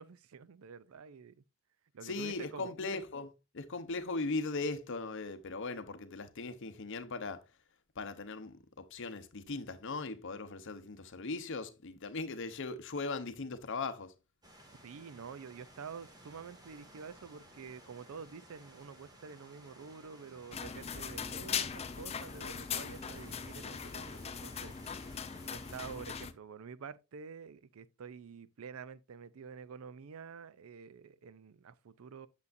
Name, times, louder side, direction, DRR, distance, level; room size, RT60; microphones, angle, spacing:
voice 1, 0.0-1.4 1.9-2.7 14.8-24.8 25.5-32.3, right 6 dB, 75° right, 0.5 m, -48 dB
voice 2, 2.0-7.4 8.0-8.6 8.9-14.1, left 3 dB, 60° left, 0.8 m, -39 dB
sound 1, 14.4-26.0, right 1 dB, 20° right, 1.5 m, -57 dB
sound 2, 20.5-26.3, left 7 dB, 30° left, 0.5 m, -40 dB
8.2 x 6.7 x 2.5 m
head